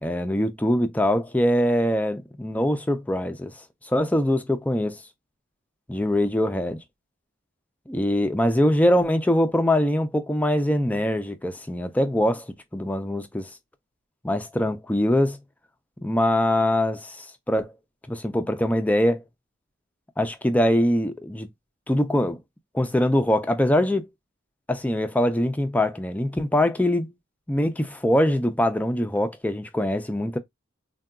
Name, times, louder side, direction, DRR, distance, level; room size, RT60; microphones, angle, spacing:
voice 1, 0.0-3.5 3.8-5.0 5.9-6.8 7.9-13.5 14.2-15.4 16.0-17.7 18.1-19.2 20.2-21.5 21.9-22.4 22.7-24.1 24.7-27.1 27.5-30.4, left 1 dB, 5° left, 0.4 m, -23 dB
3.7 x 2.2 x 2.2 m
head